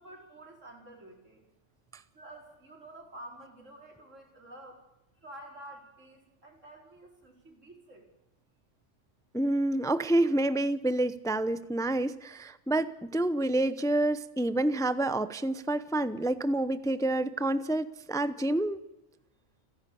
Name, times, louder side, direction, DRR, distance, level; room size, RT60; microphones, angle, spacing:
voice 1, 0.0-1.4 2.1-4.8 5.2-8.1, right 1 dB, 90° right, 1 dB, 5.0 m, -49 dB
voice 2, 9.3-18.8, right 1 dB, 5° left, 13 dB, 0.6 m, -28 dB
30.0 x 11.0 x 8.5 m, 0.94 s
omnidirectional pair, 1.3 m